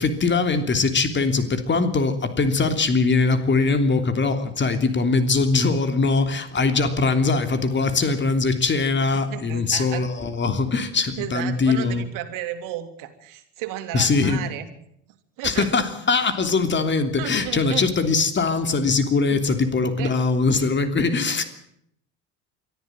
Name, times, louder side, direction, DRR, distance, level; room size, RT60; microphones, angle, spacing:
voice 1, 0.0-12.0 13.9-14.4 15.4-21.4, left 4 dB, 35° left, 8 dB, 3.2 m, -21 dB
voice 2, 9.1-10.1 11.2-14.7 15.4-15.7 17.2-17.9 19.3-19.6 20.0-20.1, right 13 dB, 70° right, 8 dB, 2.7 m, -33 dB
23.5 x 13.5 x 9.1 m, 0.72 s
supercardioid pair, 80°, 33 cm